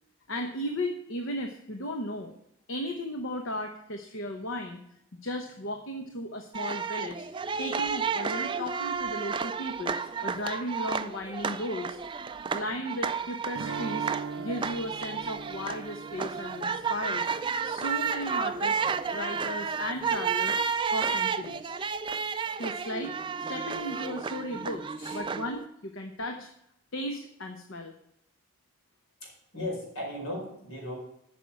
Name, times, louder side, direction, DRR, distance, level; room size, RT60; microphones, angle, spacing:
voice 1, 0.3-2.3 2.7-4.8 5.2-7.2 7.6-12.0 12.5-14.1 14.4-17.3 17.6-18.8 19.1-20.6 20.9-21.7 22.6-23.2 23.5-26.5 26.9-27.9, left 1 dB, 60° left, 4 dB, 0.9 m, -35 dB
sound 1, 6.5-25.7, right 6 dB, 20° right, 0.3 m, -32 dB
sound 2, 13.6-18.5, right 5 dB, 70° right, 0.5 m, -41 dB
voice 2, 29.2-31.0, left 1 dB, 80° left, -2 dB, 4.6 m, -37 dB
8.8 x 6.0 x 8.3 m, 0.76 s
head